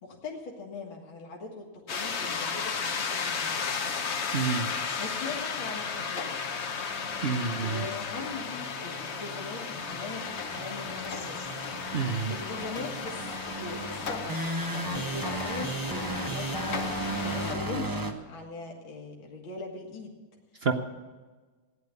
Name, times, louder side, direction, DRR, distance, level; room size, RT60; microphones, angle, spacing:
voice 1, 0.0-3.8 5.0-6.4 7.5-11.4 12.0-20.1, left 3 dB, 70° left, -1 dB, 2.5 m, -41 dB
sound 1, 1.9-17.5, left 5 dB, 50° left, 0.8 m, -34 dB
voice 2, 4.3-4.7 7.2-7.8 11.9-12.3 20.6-20.7, right 5 dB, 75° right, 6 dB, 0.5 m, -28 dB
sound 2, 5.7-18.1, right 1 dB, 15° right, 0.8 m, -37 dB
16.0 x 10.5 x 8.1 m, 1.3 s
omnidirectional pair, 2.3 m